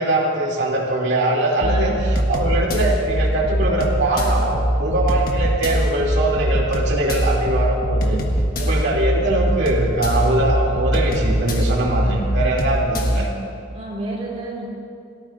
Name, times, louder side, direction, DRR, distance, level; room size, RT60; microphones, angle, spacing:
voice 1, 0.0-8.2 8.6-13.3, right 1 dB, 55° right, -3 dB, 2.6 m, -21 dB
sound 1, 1.6-13.3, equal, 45° left, 1.4 m, -22 dB
voice 2, 1.6-2.0 13.7-14.7, right 2 dB, 30° right, -4 dB, 3.0 m, -30 dB
29.5 x 14.0 x 2.5 m, 2.5 s
head